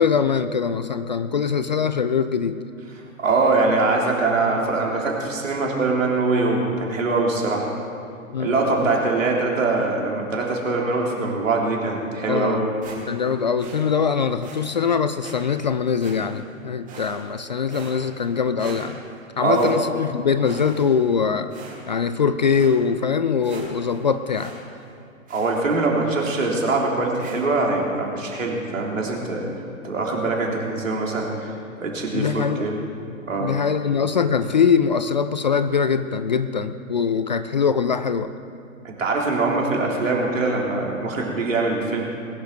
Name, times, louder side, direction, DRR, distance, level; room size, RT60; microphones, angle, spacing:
voice 1, 0.0-2.6 8.3-8.9 12.3-12.7 13.1-19.0 19.4-21.5 21.9-24.5 32.1-32.7 33.1-38.3, left 6 dB, 35° left, 11 dB, 0.4 m, -22 dB
voice 2, 3.2-7.7 8.4-12.6 19.4-19.7 25.3-29.5 29.8-31.5 31.8-32.8 33.3-33.5 38.8-42.1, right 3 dB, 65° right, -1 dB, 3.4 m, -23 dB
sound 1, 12.8-13.3 13.6-13.8 14.4-14.6 15.2-15.4 16.0-16.5 16.9-17.4 17.7-18.3 18.6-19.2 19.5-20.1 20.4-21.1 21.5-22.0 22.5-22.7 23.1-23.2 23.4-24.0 24.3-24.6 24.8-24.9 25.3-25.6 26.2-26.5 27.2-27.4, right 4 dB, 20° right, 2.8 m, -42 dB
20.5 x 11.5 x 4.6 m, 2.4 s
figure-of-eight pair, 120°, 42 cm